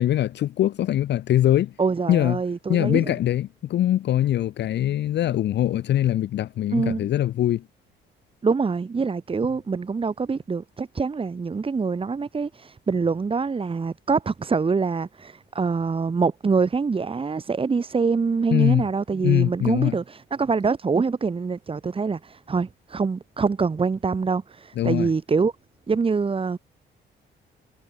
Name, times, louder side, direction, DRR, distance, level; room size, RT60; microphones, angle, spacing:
voice 1, 0.0-1.7 2.1-2.4 2.7-7.6 18.5-18.9 19.2-19.9 24.8-25.1, left 12 dB, 60° left, 0.6 m, -22 dB
voice 2, 1.8-3.1 6.7-7.1 8.4-25.5 25.9-26.6, right 5 dB, 25° right, 1.2 m, -25 dB
cardioid pair, 90°, 20 cm